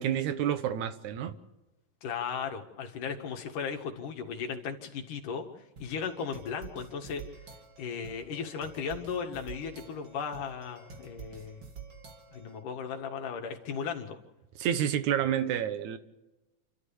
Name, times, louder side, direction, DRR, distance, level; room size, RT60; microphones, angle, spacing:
voice 1, 0.0-1.4 14.6-16.0, right 10 dB, 70° right, 11 dB, 2.4 m, -29 dB
voice 2, 2.0-5.5 5.8-7.2 7.8-11.6 12.3-14.2, left 6 dB, 75° left, 3 dB, 3.4 m, -36 dB
sound 1, 5.8-12.6, right 5 dB, 40° right, 2.8 m, -49 dB
28.5 x 13.0 x 7.2 m, 1.0 s
omnidirectional pair, 3.8 m